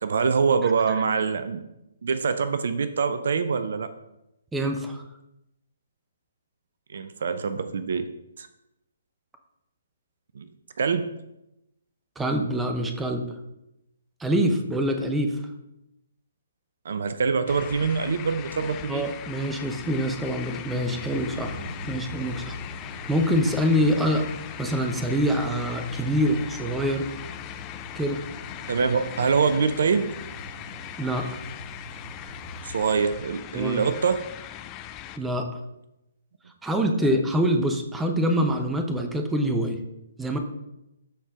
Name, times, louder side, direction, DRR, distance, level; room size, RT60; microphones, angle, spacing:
voice 1, 0.0-1.6 2.0-3.9 6.9-8.1 8.4-8.5 10.4-10.5 10.8-11.1 16.8-19.1 28.7-30.1 32.6-34.3, right 5 dB, 55° right, 11 dB, 0.5 m, -24 dB
voice 2, 4.5-5.0 12.2-13.3 14.2-15.4 18.9-21.6 21.9-22.6 23.1-24.3 24.6-27.1 27.9-28.2 31.0-31.4 33.5-33.8 35.2-35.5 36.6-39.8 40.2-40.4, equal, 5° right, 5 dB, 0.8 m, -25 dB
sound 1, 17.5-35.2, left 11 dB, 20° left, 0.4 m, -40 dB
sound 2, 20.9-32.6, equal, 35° right, 2.3 m, -42 dB
13.0 x 4.4 x 3.5 m, 0.88 s
figure-of-eight pair, 130°, 0 cm